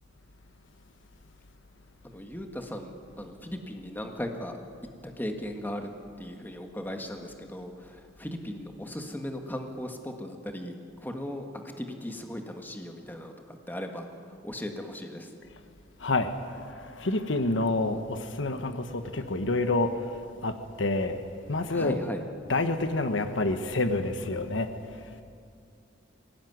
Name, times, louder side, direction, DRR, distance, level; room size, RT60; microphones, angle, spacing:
voice 1, 2.0-4.6 5.0-5.9 6.2-15.3 21.7-22.2, left 1 dB, 10° left, 4 dB, 1.7 m, -37 dB
voice 2, 16.0-16.3 16.7-19.9 20.4-20.5 20.8-21.2 21.5-22.0 22.5-24.7, left 2 dB, 75° left, 8 dB, 1.4 m, -27 dB
22.0 x 18.5 x 9.6 m, 2.3 s
head